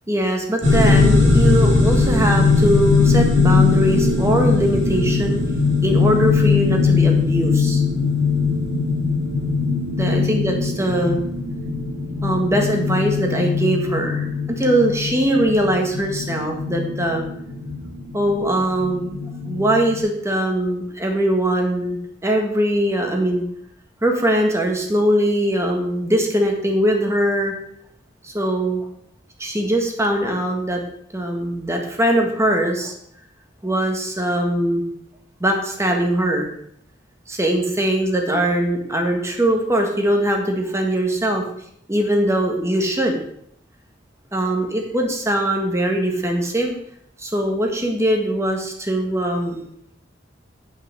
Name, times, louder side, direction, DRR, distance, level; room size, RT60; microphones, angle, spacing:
voice 1, 0.1-5.4 5.8-7.8 10.0-11.2 12.2-17.2 18.1-19.2 19.5-23.4 24.0-27.5 28.2-28.9 29.4-30.8 31.1-32.9 33.6-34.8 35.4-36.5 37.3-41.4 41.9-43.2 44.3-46.8 47.2-49.6, right 1 dB, 15° right, 2 dB, 1.6 m, -21 dB
sound 1, 0.6-20.0, left 4 dB, 70° right, 2.7 m, -20 dB
8.7 x 5.9 x 7.1 m, 0.70 s
head